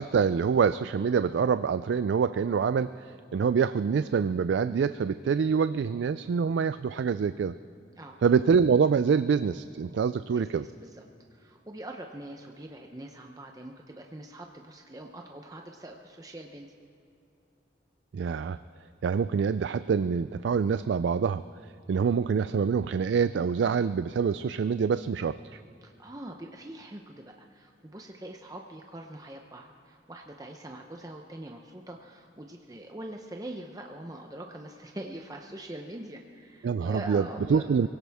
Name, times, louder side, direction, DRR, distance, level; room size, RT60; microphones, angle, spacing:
voice 1, 0.0-7.6 8.2-10.6 18.1-18.6 19.0-21.4 21.9-25.6 36.6-37.9, right 6 dB, 80° right, 13 dB, 0.3 m, -26 dB
voice 2, 10.3-10.9 11.3-16.7 25.8-37.9, right 1 dB, 20° right, 2 dB, 0.7 m, -43 dB
24.0 x 17.0 x 3.5 m, 2.7 s
head